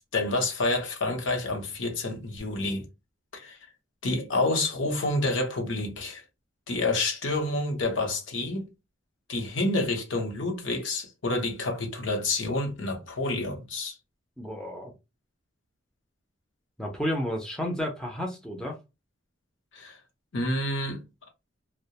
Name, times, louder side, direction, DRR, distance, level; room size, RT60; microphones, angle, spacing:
voice 1, 0.1-2.9 3.3-3.6 4.0-6.2 6.7-8.6 9.3-13.9 19.7-20.0 20.3-21.0, left 2 dB, 75° left, 0.8 m, -28 dB
voice 2, 14.4-14.9 16.8-18.8, equal, 5° left, 0.4 m, -31 dB
2.3 x 2.1 x 2.8 m
head